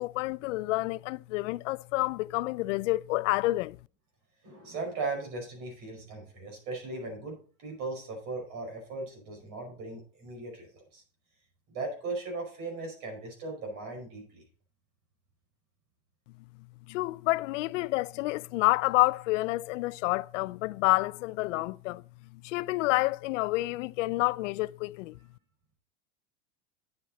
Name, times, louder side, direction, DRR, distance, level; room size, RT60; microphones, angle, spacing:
voice 1, 0.0-3.8 16.9-22.0 22.3-25.2, left 20 dB, 85° left, 0.5 m, -29 dB
voice 2, 4.4-11.0 11.7-14.4, right 3 dB, 45° right, 5.3 m, -38 dB
9.5 x 7.5 x 4.1 m
supercardioid pair, 165°, 36 cm